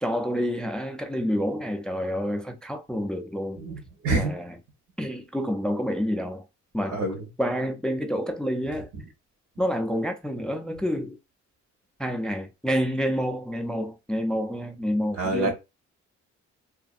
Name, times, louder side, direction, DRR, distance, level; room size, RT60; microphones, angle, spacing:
voice 1, 0.0-3.6 4.2-4.6 5.0-6.5 6.7-7.1 7.4-8.9 9.6-11.2 12.0-15.5, equal, 5° left, 0.3 m, -28 dB
voice 2, 3.6-4.3 6.9-7.1 15.2-15.5, right 2 dB, 70° right, 1.0 m, -26 dB
2.5 x 2.5 x 2.4 m
cardioid pair, 90°, 30 cm